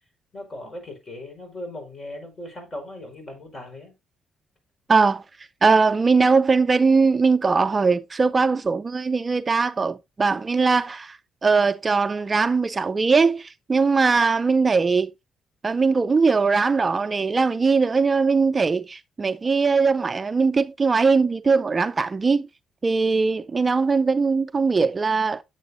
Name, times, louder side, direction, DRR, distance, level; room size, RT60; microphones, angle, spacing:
voice 1, 0.3-3.9, left 1 dB, 30° left, 5.2 m, -38 dB
voice 2, 4.9-15.1 15.6-22.5 22.8-25.4, right 4 dB, 30° right, 0.4 m, -20 dB
8.7 x 8.2 x 2.7 m
cardioid pair, 90°, 0 cm